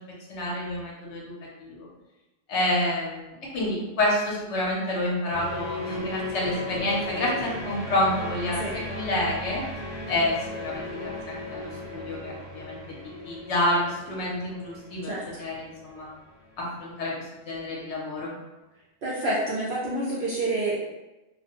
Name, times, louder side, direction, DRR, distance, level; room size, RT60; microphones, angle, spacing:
voice 1, 0.3-1.3 1.6-1.9 2.5-9.6 10.1-12.8 13.2-15.1 15.4-16.1 16.6-18.3, left 1 dB, 70° left, -4 dB, 1.1 m, -28 dB
sound 1, 5.3-16.7, left 2 dB, 25° right, 0.9 m, -37 dB
voice 2, 19.0-20.8, right 2 dB, 55° right, -7 dB, 0.7 m, -28 dB
2.5 x 2.2 x 2.9 m, 1.0 s
omnidirectional pair, 1.2 m